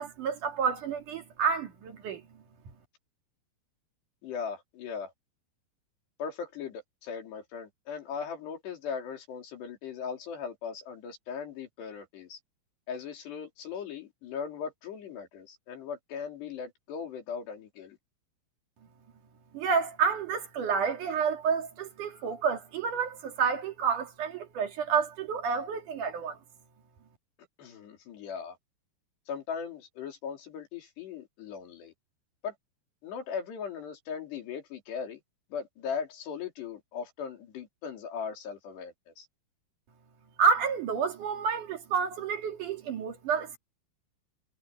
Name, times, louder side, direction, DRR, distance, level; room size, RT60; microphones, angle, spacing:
voice 1, 0.0-2.2 19.5-26.4 40.4-43.6, right 6 dB, 55° right, 3.3 m, -29 dB
voice 2, 4.2-5.1 6.2-12.4 12.9-18.0 27.6-28.6 29.3-31.9 32.4-32.5 33.0-35.2 35.5-39.3, left 6 dB, 90° left, 5.7 m, -38 dB
omnidirectional pair, 4.7 m